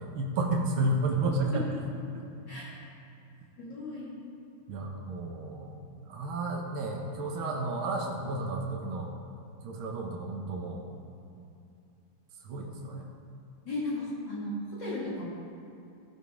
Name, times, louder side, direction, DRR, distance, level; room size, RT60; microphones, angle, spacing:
voice 1, 0.0-1.8 2.1-2.2 4.7-5.8 6.1-9.1 9.6-10.9 12.4-13.1, right 2 dB, 75° right, 0 dB, 1.7 m, -32 dB
voice 2, 3.6-4.1 13.6-15.3, left 1 dB, 55° left, -8 dB, 2.9 m, -35 dB
15.0 x 5.1 x 5.0 m, 2.6 s
omnidirectional pair, 2.4 m